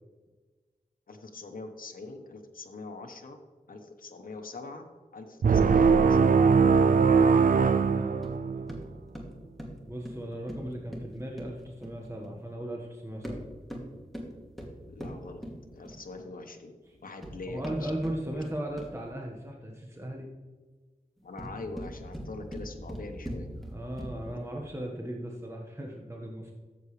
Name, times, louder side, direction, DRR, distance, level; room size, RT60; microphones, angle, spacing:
voice 1, 1.1-3.4 3.7-4.8 5.1-6.4 14.9-15.4 15.7-16.7 17.0-17.9 21.2-23.5, left 3 dB, 85° left, 3 dB, 1.0 m, -43 dB
sound 1, 5.4-8.8, right 5 dB, 70° right, 0.4 m, -21 dB
voice 2, 7.9-8.7 9.9-13.4 16.9-17.0 17.5-20.3 23.6-26.5, right 1 dB, 20° right, 0 dB, 1.5 m, -37 dB
sound 2, 8.2-12.4 13.1-16.2 16.9-19.1 21.2-24.4, equal, ahead, 2.5 m, -42 dB
13.5 x 8.1 x 3.3 m, 1.3 s
wide cardioid pair, 55°, 14 cm